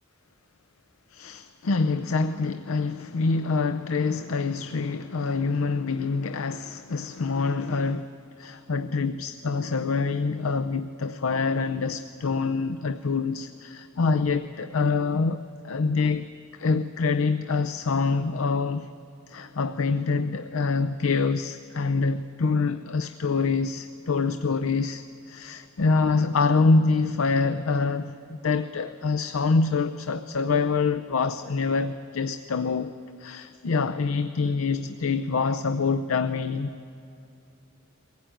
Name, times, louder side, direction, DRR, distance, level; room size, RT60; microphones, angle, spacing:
voice 1, 1.1-8.1 8.4-16.3 16.6-18.9 19.3-28.1 28.4-32.9 33.2-36.7, left 4 dB, 85° left, 0.6 m, -25 dB
23.0 x 16.0 x 9.1 m
head